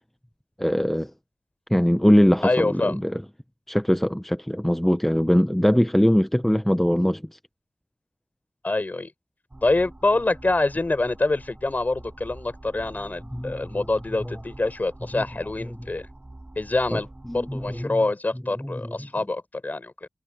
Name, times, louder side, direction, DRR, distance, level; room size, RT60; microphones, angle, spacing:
voice 1, 0.6-1.1 1.7-3.2 3.7-7.2 13.3-13.8 14.2-14.3 15.1-15.2 16.9-17.0 17.3-18.0 18.6-18.9, equal, 5° left, 0.9 m, -22 dB
voice 2, 2.4-3.0 8.6-9.1 9.6-16.1 16.5-17.1 17.3-20.1, left 2 dB, 35° left, 5.0 m, -25 dB
sound 1, 9.5-17.8, right 1 dB, 25° right, 5.4 m, -45 dB
cardioid pair, 50°, 5 cm